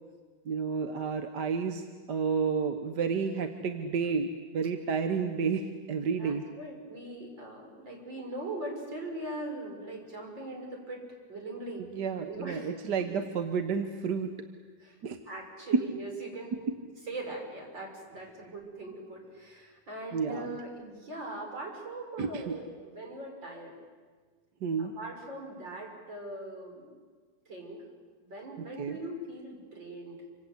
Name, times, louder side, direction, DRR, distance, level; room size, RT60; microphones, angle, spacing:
voice 1, 0.5-6.4 11.9-14.3 15.0-15.2 15.7-15.8 20.1-20.6 22.2-22.6 24.6-24.9 28.8-29.0, right 5 dB, 65° right, 7 dB, 1.8 m, -30 dB
voice 2, 6.0-11.0 11.3-11.8 12.3-12.7 14.8-15.0 15.3-16.5 17.1-23.7 24.8-26.9 27.5-27.8 28.2-30.2, right 2 dB, 85° right, 1 dB, 6.5 m, -41 dB
27.5 x 26.5 x 8.1 m, 1.5 s
omnidirectional pair, 2.0 m